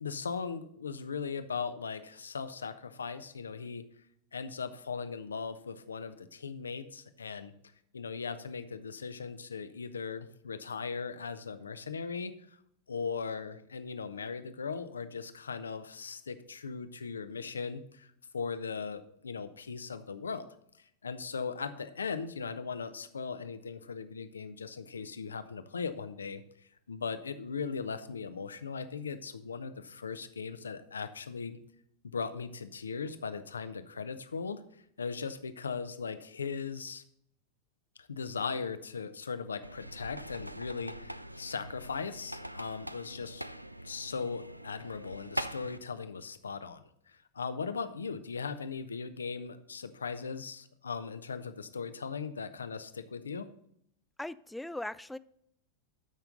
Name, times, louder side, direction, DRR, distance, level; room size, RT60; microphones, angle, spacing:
voice 1, 0.0-3.8 4.3-7.5 7.9-12.3 12.9-20.5 20.8-31.6 32.0-34.6 35.0-37.0 38.0-43.5 43.8-53.5, left 5 dB, 70° left, 11 dB, 0.7 m, -38 dB
sound 1, 39.6-45.8, right 1 dB, 85° right, 0.3 m, -42 dB
voice 2, 54.2-55.2, left 1 dB, 5° left, 16 dB, 0.4 m, -39 dB
12.5 x 5.8 x 3.8 m, 0.71 s
figure-of-eight pair, 90°, 0 cm